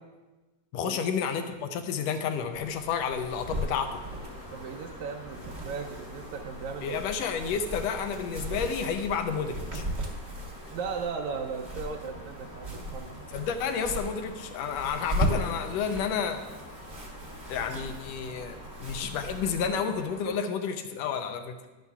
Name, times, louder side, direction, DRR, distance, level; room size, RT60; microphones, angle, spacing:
voice 1, 0.7-4.0 6.8-9.8 13.3-16.4 17.5-21.6, left 6 dB, 80° left, 7 dB, 1.6 m, -30 dB
sound 1, 2.5-19.7, right 1 dB, 35° right, 1.1 m, -38 dB
sound 2, 3.4-20.4, left 1 dB, 30° left, 1.0 m, -47 dB
voice 2, 4.5-7.0 10.7-13.2, right 5 dB, 80° right, 3 dB, 1.8 m, -37 dB
13.0 x 11.0 x 2.3 m, 1.2 s
omnidirectional pair, 3.6 m